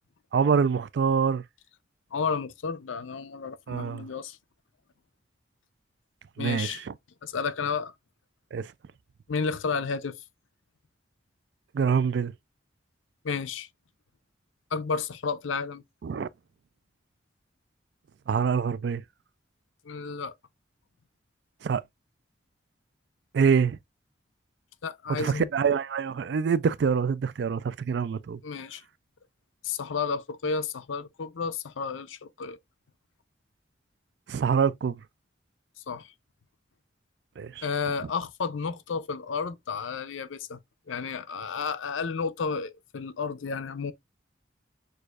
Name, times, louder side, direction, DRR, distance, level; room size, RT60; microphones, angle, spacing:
voice 1, 0.3-1.4 3.7-4.1 6.4-6.9 8.5-8.7 11.7-12.3 16.0-16.3 18.3-19.0 21.6-21.8 23.3-23.8 25.1-28.4 34.3-35.0 37.4-37.7, right 6 dB, 60° right, 0.3 m, -25 dB
voice 2, 2.1-4.4 6.4-6.8 7.2-7.9 9.3-10.2 13.2-13.7 14.7-15.8 19.8-20.3 24.8-25.5 28.4-28.8 29.6-32.6 35.9-36.1 37.6-40.6 40.9-43.9, left 5 dB, 85° left, 0.5 m, -32 dB
6.4 x 2.6 x 2.4 m
head